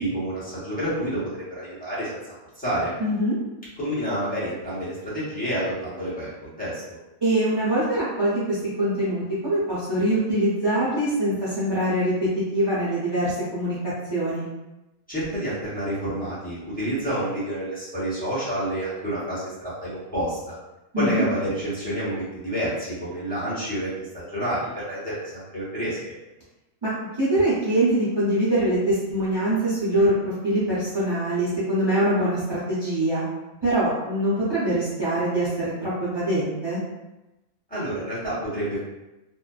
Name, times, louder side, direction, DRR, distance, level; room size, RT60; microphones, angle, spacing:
voice 1, 0.0-2.2 2.6-2.9 3.8-7.0 15.1-19.5 19.8-20.6 21.0-23.9 24.3-26.0 37.7-38.8, right 1 dB, 5° left, -10 dB, 0.8 m, -29 dB
voice 2, 3.0-3.4 7.2-13.8 14.1-14.5 20.9-21.3 26.8-26.9 27.2-33.2 33.6-36.8, right 1 dB, 40° right, -12 dB, 0.3 m, -23 dB
2.6 x 2.2 x 2.3 m, 1.0 s
omnidirectional pair, 1.4 m